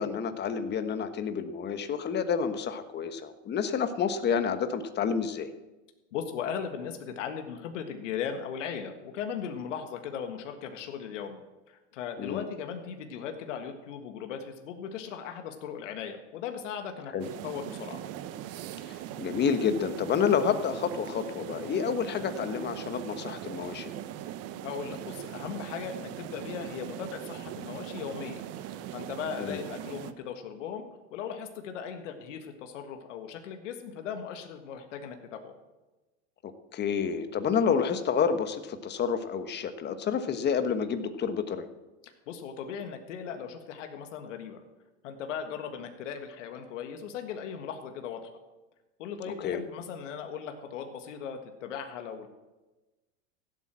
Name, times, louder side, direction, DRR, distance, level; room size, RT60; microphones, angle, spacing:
voice 1, 0.0-5.5 12.2-12.5 17.1-17.3 18.9-23.9 29.4-29.6 36.4-41.6 49.2-49.6, left 7 dB, 30° left, 9 dB, 1.3 m, -29 dB
voice 2, 6.1-11.4 11.7-17.1 17.4-18.0 24.6-30.9 31.1-35.6 42.3-44.6 45.0-48.2 49.0-52.3, left 7 dB, 80° left, 6 dB, 1.7 m, -38 dB
sound 1, 17.2-30.1, right 11 dB, 40° right, 1.0 m, -40 dB
15.5 x 8.3 x 7.6 m, 1.1 s
supercardioid pair, 120°, 37 cm